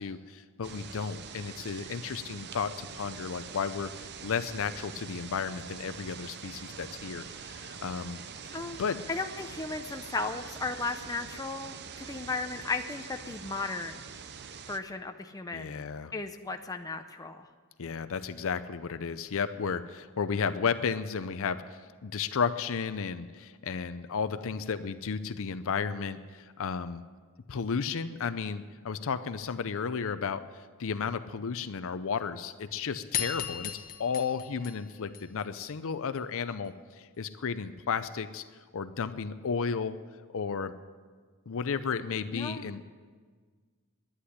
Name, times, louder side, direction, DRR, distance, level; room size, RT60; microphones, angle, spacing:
voice 1, 0.0-3.9 4.2-8.2 8.5-9.0 15.5-16.1 17.8-21.6 22.0-27.0 27.5-30.4 30.8-33.7 34.0-38.4 38.7-40.0 40.3-40.7 41.5-42.9, left 6 dB, 65° left, 12 dB, 0.5 m, -33 dB
sound 1, 0.6-14.8, right 6 dB, 50° right, 0.7 m, -44 dB
voice 2, 9.1-14.0 14.7-15.8 16.1-17.5 42.3-42.7, left 3 dB, 15° left, 6 dB, 0.5 m, -35 dB
sound 2, 33.1-35.7, left 9 dB, 40° left, 1.1 m, -36 dB
11.5 x 9.8 x 9.8 m, 1.6 s
head